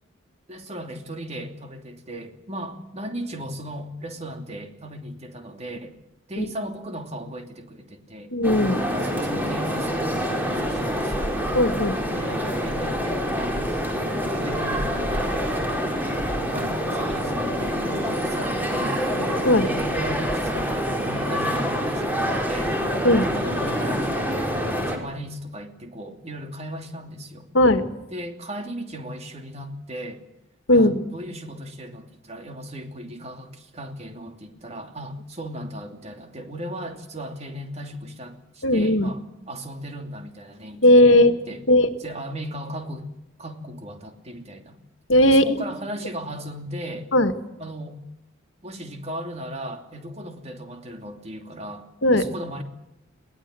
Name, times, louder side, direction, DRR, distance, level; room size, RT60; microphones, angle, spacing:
voice 1, 0.5-6.0 6.3-8.3 8.9-11.5 12.1-13.8 14.3-15.9 16.4-19.3 19.6-22.8 23.1-27.5 28.1-30.2 30.7-39.2 39.5-41.6 42.0-43.1 43.4-44.8 45.3-47.1 47.6-48.0 48.6-52.6, right 1 dB, 30° right, 5 dB, 2.8 m, -36 dB
voice 2, 8.3-8.8 11.5-12.0 19.4-19.7 23.0-23.3 27.5-27.9 30.7-31.0 38.6-39.1 40.8-41.3 41.7-41.9 45.1-45.6 47.1-47.3 52.0-52.2, left 1 dB, 75° left, 9 dB, 1.8 m, -17 dB
sound 1, 8.4-25.0, equal, 10° right, 4.4 m, -26 dB
23.0 x 18.5 x 7.7 m, 0.86 s
head